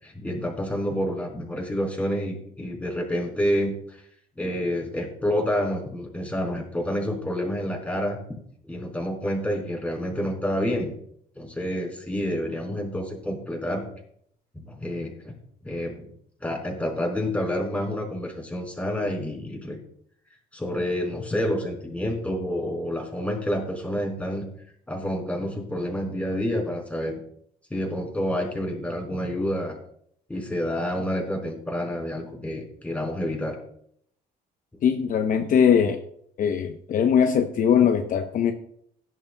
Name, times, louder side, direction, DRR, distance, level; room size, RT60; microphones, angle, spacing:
voice 1, 0.0-4.0 4.4-8.2 8.6-10.9 11.4-13.8 14.5-15.3 15.6-16.1 16.4-19.8 20.5-24.5 24.9-27.1 27.7-29.7 30.3-33.5, equal, 10° left, 0 dB, 4.5 m, -28 dB
voice 2, 34.8-36.0 36.4-38.5, left 7 dB, 50° left, 6 dB, 0.8 m, -21 dB
17.0 x 11.0 x 2.3 m, 0.67 s
cardioid pair, 110°, 17 cm